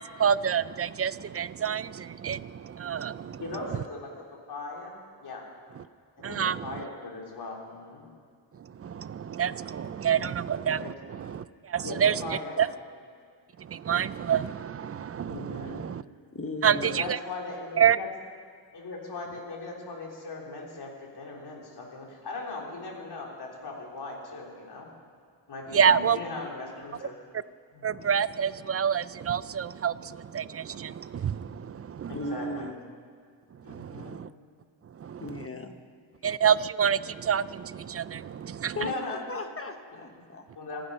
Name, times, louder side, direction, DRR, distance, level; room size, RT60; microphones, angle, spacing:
voice 1, 0.2-3.4 6.2-6.7 8.8-10.8 11.1-12.7 13.6-16.0 16.6-17.2 17.8-18.0 25.7-26.2 27.8-32.2 33.7-34.3 35.0-35.2 36.2-38.8, right 8 dB, 35° right, 17 dB, 0.4 m, -27 dB
voice 2, 3.4-4.1 4.5-4.9 5.2-5.4 6.3-8.0 10.8-10.9 11.8-12.6 15.3-15.8 16.8-18.1 18.7-24.9 25.5-27.2 27.7-28.1 32.1-32.7 33.6-34.1 35.5-35.6 38.8-39.2 39.9-40.0 40.6-40.9, left 3 dB, 55° left, -2 dB, 3.4 m, -39 dB
voice 3, 16.3-17.0 32.1-32.8 35.2-35.7 38.7-40.5, left 2 dB, 30° left, 7 dB, 1.2 m, -36 dB
26.5 x 10.0 x 5.5 m, 2.1 s
wide cardioid pair, 115°, 45 cm